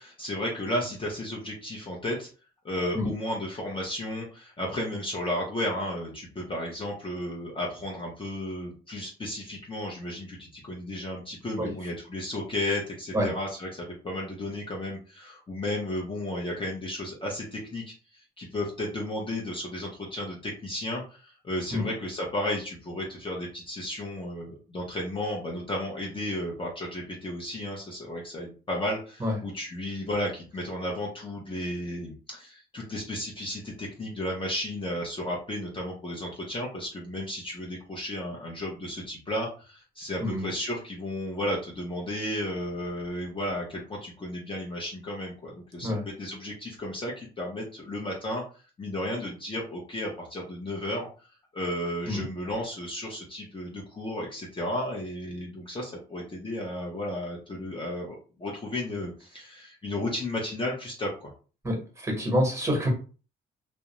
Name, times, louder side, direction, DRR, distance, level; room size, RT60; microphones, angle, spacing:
voice 1, 0.0-2.3 2.6-17.8 18.1-48.4 48.8-51.1 51.5-61.3, left 1 dB, 25° left, -2 dB, 0.8 m, -33 dB
voice 2, 61.6-62.9, equal, 15° right, 0 dB, 1.3 m, -27 dB
2.4 x 2.1 x 3.0 m, 0.36 s
cardioid pair, 90°, 20 cm